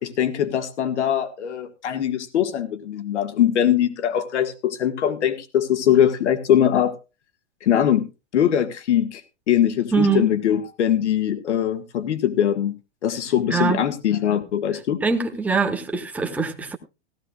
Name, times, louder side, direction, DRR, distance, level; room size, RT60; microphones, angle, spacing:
voice 1, 0.0-7.0 7.6-8.1 8.3-9.2 9.5-12.8 13.0-15.0, left 10 dB, 85° left, 1.8 m, -21 dB
voice 2, 9.9-10.4 13.5-13.8 15.0-16.8, right 5 dB, 5° right, 1.1 m, -23 dB
17.0 x 13.0 x 2.4 m
supercardioid pair, 160°, 34 cm